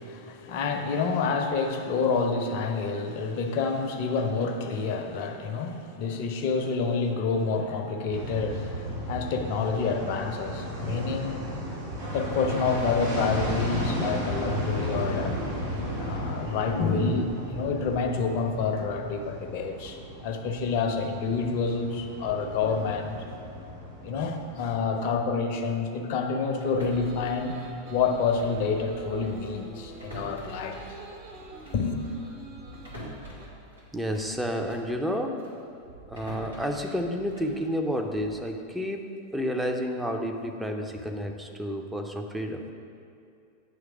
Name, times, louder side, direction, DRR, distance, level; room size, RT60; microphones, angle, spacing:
voice 1, 0.0-11.5 12.1-15.4 16.0-23.2 24.0-27.6 27.9-31.0 31.7-32.0, left 4 dB, 45° left, 4 dB, 0.6 m, -28 dB
sound 1, 8.1-25.6 25.9-26.0, equal, 65° right, 1.6 m, -34 dB
sound 2, 26.6-28.7 28.9-29.1 29.7-35.0 35.4-38.5, equal, 85° right, 1.5 m, -46 dB
sound 3, 26.9-33.5, right 2 dB, 45° right, 1.0 m, -45 dB
voice 2, 33.9-35.3 36.1-39.0 39.3-42.6, equal, 5° right, 3 dB, 0.5 m, -30 dB
9.3 x 3.2 x 4.9 m, 2.5 s
figure-of-eight pair, 90°, 0 cm